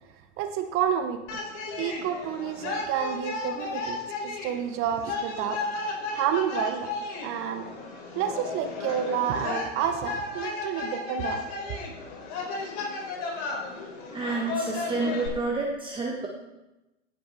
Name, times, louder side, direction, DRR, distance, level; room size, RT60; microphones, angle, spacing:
voice 1, 0.4-1.4 1.8-5.6 6.1-6.9 7.2-7.7 8.1-11.5, right 8 dB, 35° right, 7 dB, 1.1 m, -29 dB
sound 1, 1.3-15.3, left 3 dB, 45° left, 3.9 m, -34 dB
voice 2, 14.1-16.3, right 3 dB, 15° right, -1 dB, 1.4 m, -29 dB
16.5 x 6.6 x 4.2 m, 1.0 s
hypercardioid pair, 105°, 37 cm